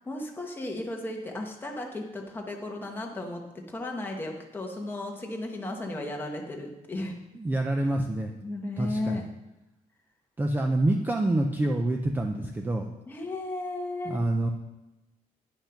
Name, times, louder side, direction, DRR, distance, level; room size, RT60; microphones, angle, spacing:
voice 1, 0.0-3.4 3.7-7.2 8.4-9.3 13.1-14.2, left 2 dB, 15° left, 1 dB, 1.2 m, -35 dB
voice 2, 7.3-8.3 8.8-9.2 10.4-12.9 14.0-14.5, right 1 dB, 10° right, 3 dB, 0.5 m, -27 dB
10.0 x 5.8 x 5.8 m, 0.98 s
cardioid pair, 175°, 15 cm